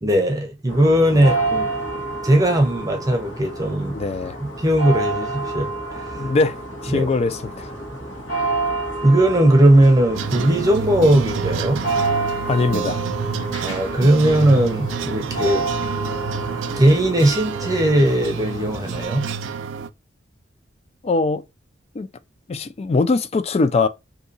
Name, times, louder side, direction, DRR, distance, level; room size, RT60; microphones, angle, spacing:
voice 1, 0.0-1.7 2.2-3.9 4.4-6.3 6.9-7.1 9.0-11.8 13.6-15.6 16.8-19.2, right 1 dB, 20° right, 0.7 m, -18 dB
sound 1, 0.7-19.1, right 2 dB, 80° left, 1.4 m, -29 dB
voice 2, 3.9-4.4 6.2-7.7 12.5-13.0 21.0-21.4 21.9-22.1 22.5-23.9, left 3 dB, 35° left, 0.4 m, -22 dB
sound 2, 10.1-19.9, right 6 dB, 75° right, 0.4 m, -29 dB
2.8 x 2.7 x 3.9 m
head